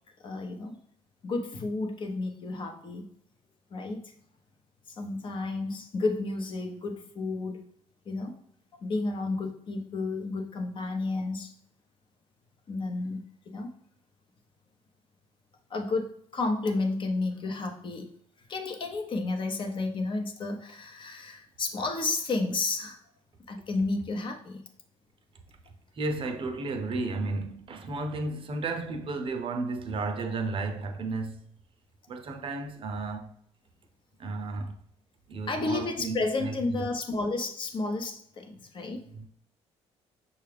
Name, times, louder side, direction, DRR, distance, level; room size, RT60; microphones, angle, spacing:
voice 1, 0.2-0.8 1.2-3.1 3.7-4.0 4.9-7.6 8.1-8.4 8.8-11.5 12.7-13.2 13.5-13.7 15.7-18.1 18.5-23.0 23.5-24.6 35.5-39.1, left 3 dB, 40° left, 0.7 m, -31 dB
voice 2, 25.9-31.4 32.1-33.3 34.2-34.8 35.3-36.9 39.1-39.3, right 3 dB, 45° right, 0.6 m, -33 dB
5.7 x 2.3 x 3.3 m
cardioid pair, 90°, 12 cm